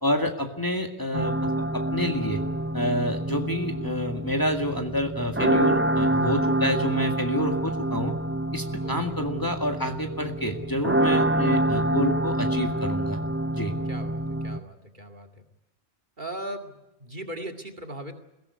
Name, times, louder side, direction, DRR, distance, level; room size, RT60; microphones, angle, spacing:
voice 1, 0.0-1.3 1.7-2.4 2.7-8.1 8.5-13.2 13.5-13.8, left 1 dB, 20° left, 3 dB, 2.0 m, -28 dB
sound 1, 1.1-14.6, right 1 dB, 15° right, 0.7 m, -27 dB
voice 2, 13.9-15.4 16.2-18.2, right 1 dB, 45° right, 4 dB, 2.4 m, -38 dB
22.0 x 17.0 x 9.6 m, 0.96 s
omnidirectional pair, 1.2 m